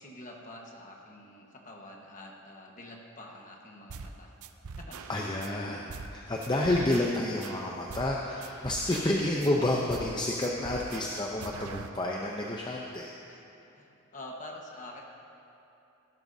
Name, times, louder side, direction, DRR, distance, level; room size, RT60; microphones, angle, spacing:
voice 1, 0.0-4.3 4.8-5.0 8.9-9.1 12.8-13.0 13.3-13.4 13.7-15.0, left 1 dB, 35° left, 0 dB, 1.3 m, -47 dB
sound 1, 3.9-4.1 4.4-5.5 5.9-6.1 6.4-8.1 8.4-9.5 9.9-10.2 10.4-11.9, right 4 dB, 75° right, 0.5 m, -43 dB
voice 2, 5.1-13.1, left 1 dB, 20° left, -1 dB, 0.6 m, -30 dB
17.0 x 12.0 x 2.7 m, 3.0 s
head